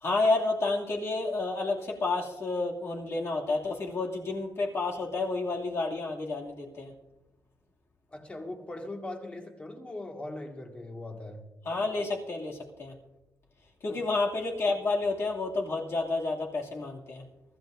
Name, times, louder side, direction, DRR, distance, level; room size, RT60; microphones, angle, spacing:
voice 1, 0.0-6.9 11.6-12.9 13.8-17.2, left 3 dB, 45° left, -1 dB, 2.4 m, -30 dB
voice 2, 8.1-11.4 13.9-14.0, left 2 dB, 20° left, 2 dB, 1.8 m, -40 dB
24.0 x 13.5 x 2.6 m, 0.97 s
wide cardioid pair, 165°, 6 cm